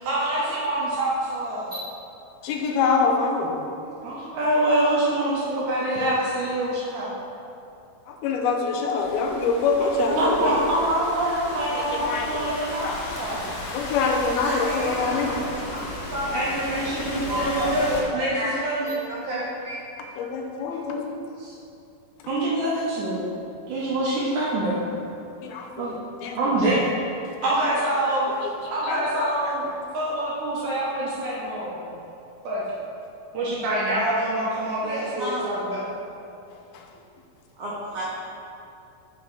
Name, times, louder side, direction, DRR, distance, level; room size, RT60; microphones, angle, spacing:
voice 1, 0.0-1.8 4.0-7.1 10.1-13.5 16.3-19.0 21.4-21.6 22.3-23.3 23.7-24.8 25.8-25.9 26.3-26.8 27.4-28.3 28.7-29.7 29.9-31.8 32.4-32.6 33.3-35.9, right 1 dB, 70° right, -6 dB, 1.9 m, -25 dB
voice 2, 2.4-3.7 8.1-10.6 11.7-12.5 12.8-13.0 13.7-15.4 20.2-21.2 25.4-26.4 27.4-27.5 28.4-29.5 36.7-36.9, left 4 dB, 85° left, 2 dB, 2.6 m, -25 dB
Thunderstorm / Rain, 9.0-18.0, left 2 dB, 65° left, 2.0 m, -35 dB
voice 3, 14.4-15.4 15.7-15.8 16.1-16.3 16.8-16.9 17.2-18.0 18.3-18.5 18.8-19.7 34.8-35.4 37.6-38.1, right 1 dB, 85° right, -7 dB, 1.4 m, -31 dB
5.7 x 4.6 x 5.2 m, 2.6 s
omnidirectional pair, 4.3 m